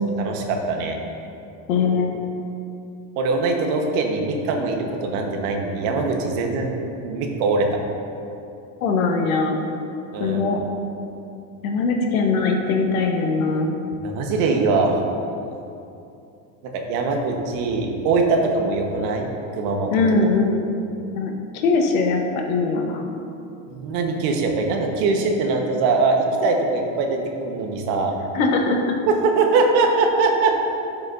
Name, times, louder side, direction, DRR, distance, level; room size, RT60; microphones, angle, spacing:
voice 1, 0.2-1.0 3.2-6.7 7.0-7.7 10.1-10.5 14.0-15.0 16.7-19.9 23.7-28.1 29.1-30.5, right 3 dB, 65° right, 2 dB, 1.3 m, -22 dB
voice 2, 1.7-2.2 8.8-9.6 10.2-10.6 11.6-13.7 19.9-20.6 21.1-22.2 22.5-23.0 28.3-28.8, left 4 dB, 85° left, 2 dB, 1.2 m, -21 dB
11.5 x 5.8 x 2.6 m, 2.7 s
supercardioid pair, 125°, 40 cm